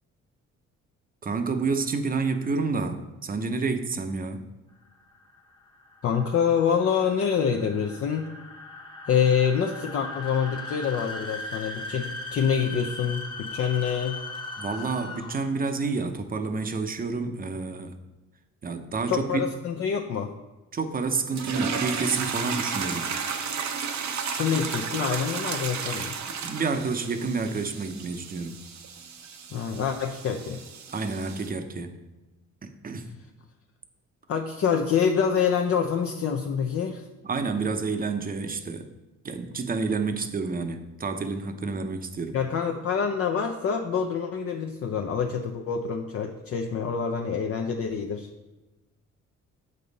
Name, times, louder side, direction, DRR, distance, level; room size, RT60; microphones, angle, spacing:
voice 1, 1.2-4.5 14.6-18.0 18.6-19.4 20.7-23.1 26.4-28.6 30.9-32.0 32.6-33.1 37.2-38.9 39.2-42.4, right 4 dB, 30° right, 7 dB, 0.7 m, -29 dB
sound 1, 4.9-15.6, left 3 dB, 15° left, 0.9 m, -39 dB
voice 2, 6.0-8.3 9.1-14.2 19.1-20.3 24.3-26.2 29.5-30.6 34.3-37.0 42.3-48.3, left 7 dB, 50° left, 2 dB, 0.6 m, -26 dB
sound 2, 21.3-31.5, right 6 dB, 65° right, 0.8 m, -33 dB
7.5 x 5.4 x 4.0 m, 1.1 s
cardioid pair, 90°, 30 cm